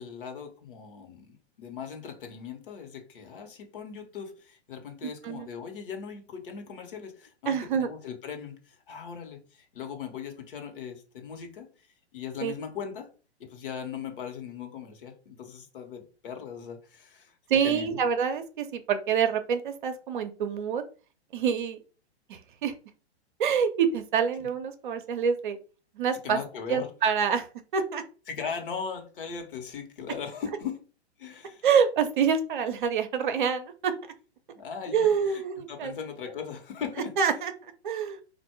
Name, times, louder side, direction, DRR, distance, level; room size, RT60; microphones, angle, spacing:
voice 1, 0.0-11.7 12.1-13.1 13.4-17.4 17.6-18.0 24.4-24.5 26.2-26.9 28.3-30.8 31.2-31.6 34.5-35.4 35.7-37.1, left 6 dB, 50° left, 4 dB, 1.3 m, -39 dB
voice 2, 5.0-5.5 7.5-7.9 12.4-12.5 17.5-20.8 21.3-21.8 22.3-22.7 23.4-25.6 25.9-26.4 26.7-27.5 27.7-28.0 31.6-33.9 34.9-35.9 37.2-38.2, right 7 dB, 45° right, 8 dB, 0.7 m, -26 dB
4.2 x 2.6 x 4.6 m, 0.37 s
figure-of-eight pair, 115°, 33 cm